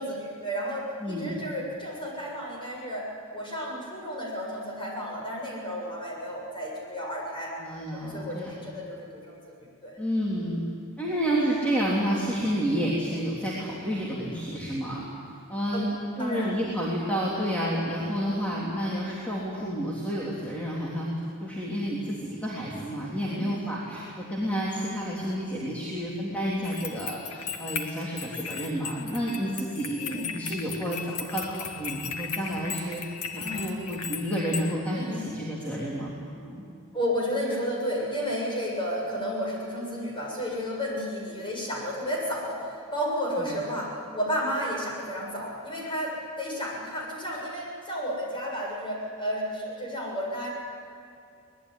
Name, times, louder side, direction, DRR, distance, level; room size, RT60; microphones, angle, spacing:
voice 1, 0.0-3.1 3.3-7.5 7.9-9.9 15.7-15.8 16.2-16.6 23.3-23.5 30.0-30.3 33.4-33.8 34.9-35.2 36.9-50.5, equal, 20° left, -2 dB, 7.2 m, -32 dB
voice 2, 1.0-1.4 7.6-8.5 10.0-10.6 11.0-15.0 15.5-21.1 21.4-33.0 33.3-36.1 36.4-36.6 43.4-43.6, equal, 5° left, -6 dB, 3.5 m, -30 dB
sound 1, 26.6-34.7, left 6 dB, 80° left, 2.3 m, -36 dB
24.0 x 20.0 x 10.0 m, 2.6 s
head